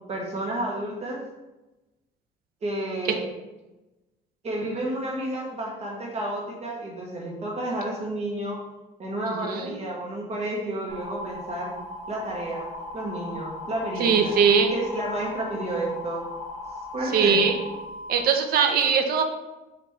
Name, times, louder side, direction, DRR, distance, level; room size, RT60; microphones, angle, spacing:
voice 1, 0.1-1.2 2.6-3.2 4.4-8.6 9.0-11.7 12.1-12.7 12.9-14.4 14.7-16.3 16.9-17.4, right 1 dB, 40° right, -2 dB, 1.0 m, -31 dB
voice 2, 9.2-9.7 14.0-14.7 17.1-17.6 18.1-19.2, right 6 dB, 60° right, 5 dB, 0.6 m, -21 dB
sound 1, 10.9-18.2, left 2 dB, 50° left, 0.8 m, -38 dB
5.1 x 2.5 x 3.2 m, 1.0 s
cardioid pair, 110°, 17 cm